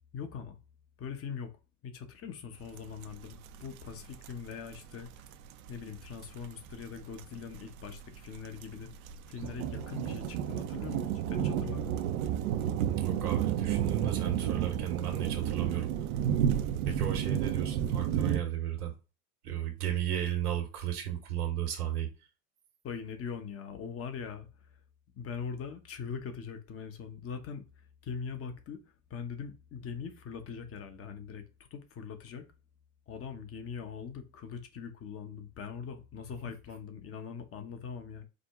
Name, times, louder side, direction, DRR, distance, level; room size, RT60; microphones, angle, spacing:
voice 1, 0.1-0.6 1.0-1.5 1.8-5.3 5.7-8.9 9.3-12.0 22.8-24.5 25.1-27.6 28.0-28.8 29.1-31.5 31.7-32.5 33.1-38.2, left 6 dB, 30° left, 1.0 m, -41 dB
sound 1, 2.8-2.9 3.0-18.4, right 9 dB, 65° right, 0.7 m, -32 dB
voice 2, 12.8-15.9 16.9-18.9 19.4-22.1, right 11 dB, 90° right, 1.3 m, -34 dB
5.1 x 2.2 x 3.6 m
hypercardioid pair, 100°, 45 cm